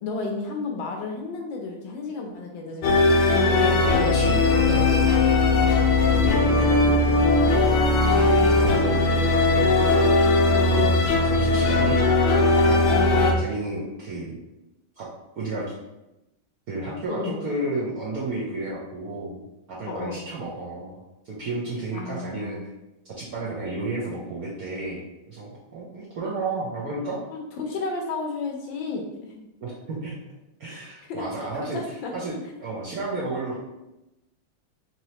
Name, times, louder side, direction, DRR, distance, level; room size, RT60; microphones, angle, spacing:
voice 1, 0.0-3.2 17.1-17.4 19.9-20.2 21.9-22.6 27.3-29.4 31.1-32.2, left 3 dB, 75° left, 1 dB, 1.2 m, -32 dB
sound 1, 2.8-13.3, left 2 dB, 90° left, 1.5 m, -19 dB
voice 2, 4.0-5.1 5.6-5.8 6.1-7.8 8.2-9.7 10.6-10.9 11.3-12.1 12.5-12.9 13.4-14.4 15.0-15.1 15.4-15.7 16.7-19.4 19.7-22.6 23.0-27.2 29.6-30.2 30.6-31.8 32.1-33.6, right 2 dB, 65° right, -6 dB, 0.9 m, -32 dB
4.1 x 3.1 x 2.8 m, 0.94 s
omnidirectional pair, 2.3 m